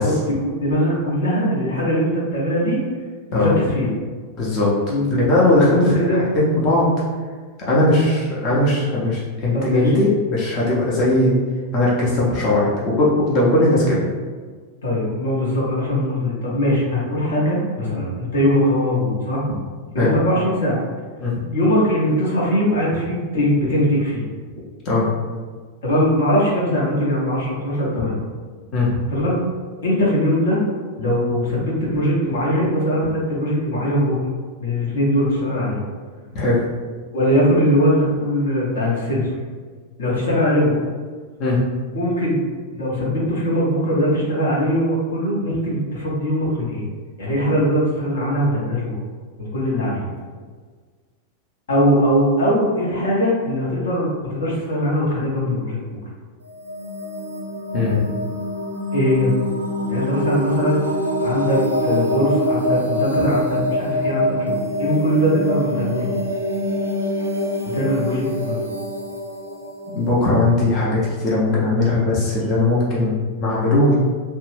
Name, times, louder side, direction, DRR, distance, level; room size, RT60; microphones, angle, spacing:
voice 1, 0.0-2.8 3.3-3.9 4.9-5.2 5.7-6.2 9.5-10.0 14.8-19.4 19.9-20.8 21.5-24.2 25.8-28.2 29.1-29.4 29.8-30.6 31.0-34.2 34.6-35.8 37.1-39.3 40.0-40.7 41.9-42.4 42.7-46.9 47.2-48.9 49.4-50.1 51.7-55.8 58.9-59.3 59.9-60.8 61.2-66.2 67.6-68.6, equal, 65° left, -5 dB, 0.8 m, -21 dB
voice 2, 4.4-4.7 5.2-6.0 6.3-6.9 7.7-11.3 11.7-14.0 20.0-20.1 21.2-21.4 24.8-25.1 28.7-29.0 36.3-36.6 41.4-41.7 57.7-58.1 69.9-73.9, left 2 dB, 35° left, -6 dB, 0.6 m, -18 dB
sound 1, 56.4-71.1, equal, 85° right, 0.4 m, -25 dB
2.7 x 2.2 x 3.1 m, 1.5 s
figure-of-eight pair, 90°, 0 cm